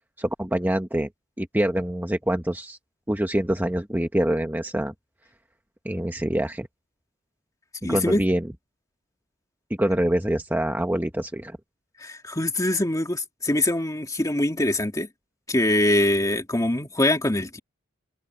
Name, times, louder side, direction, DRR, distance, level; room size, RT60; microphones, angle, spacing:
voice 1, 0.2-1.1 1.4-2.8 3.1-4.9 5.8-6.7 7.8-8.5 9.8-11.6, right 1 dB, 10° right, 1.2 m, -25 dB
voice 2, 7.8-8.2 12.0-15.1 15.5-17.6, left 1 dB, 15° left, 2.2 m, -23 dB
head